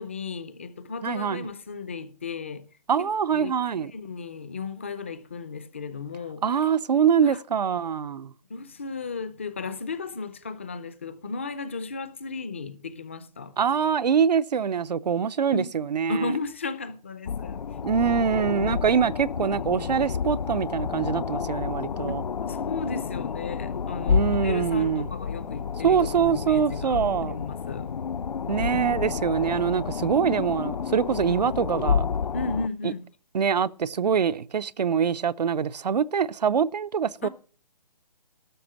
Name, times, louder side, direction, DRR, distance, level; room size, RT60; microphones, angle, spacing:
voice 1, 0.0-2.6 3.0-3.1 3.3-6.4 7.2-7.4 8.5-13.5 15.5-15.7 16.1-17.6 22.1-27.9 29.2-29.3 32.3-33.1 37.2-37.3, left 4 dB, 20° left, 0.5 m, -35 dB
voice 2, 1.0-1.5 2.9-3.9 6.4-8.3 13.6-16.3 17.8-22.2 24.1-25.1 25.8-27.4 28.5-32.1 32.8-32.9 33.3-37.3, right 7 dB, 75° right, 0.7 m, -24 dB
sound 1, 17.2-32.7, left 6 dB, 90° left, 0.7 m, -30 dB
12.5 x 6.1 x 8.6 m
hypercardioid pair, 170°, 21 cm